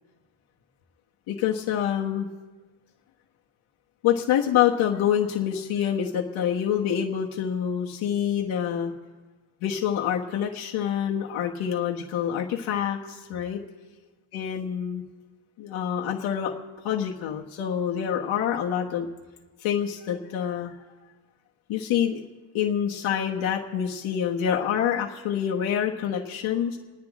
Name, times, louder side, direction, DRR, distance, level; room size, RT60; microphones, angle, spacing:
voice 1, 1.3-2.3 4.0-8.9 9.6-13.6 14.3-15.0 15.6-16.5 16.8-19.1 19.6-20.7 21.7-22.2 22.5-26.8, left 9 dB, 90° left, -2 dB, 1.3 m, -26 dB
28.0 x 10.0 x 3.6 m, 1.3 s
cardioid pair, 105°, 46 cm